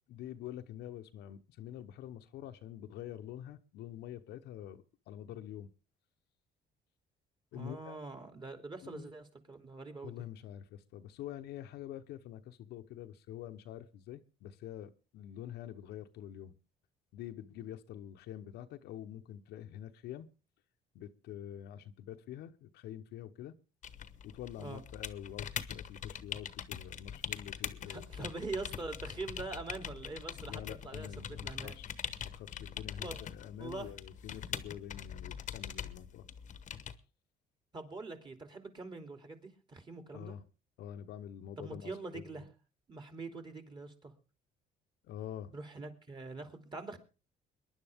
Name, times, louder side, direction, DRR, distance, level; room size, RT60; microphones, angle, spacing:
voice 1, 0.1-5.7 7.5-8.0 8.8-9.1 10.0-16.5 17.1-20.3 20.9-23.6 24.2-28.3 30.5-31.9 32.2-36.3 40.1-40.4 40.8-42.4 45.1-45.5, left 11 dB, 80° left, 1.0 m, -46 dB
voice 2, 7.5-10.2 24.6-24.8 27.9-31.7 33.0-33.2 33.6-33.9 37.7-40.4 41.6-42.5 42.9-44.1 45.5-47.0, right 3 dB, 25° right, 3.0 m, -44 dB
sound 1, 23.8-37.0, left 8 dB, 45° left, 1.1 m, -43 dB
22.5 x 11.0 x 3.6 m
cardioid pair, 110°, 17 cm